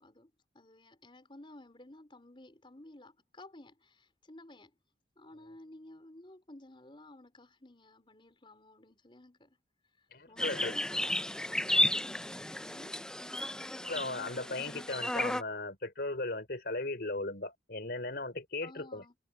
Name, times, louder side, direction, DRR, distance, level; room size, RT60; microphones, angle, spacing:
voice 1, 0.0-4.7 5.2-9.6 10.0-11.5 12.6-13.0 18.6-19.1, left 1 dB, 30° left, 4.7 m, -54 dB
voice 2, 10.1-10.7 13.5-19.0, left 2 dB, 55° left, 4.4 m, -37 dB
sound 1, 10.4-15.4, left 1 dB, 5° left, 0.4 m, -33 dB
head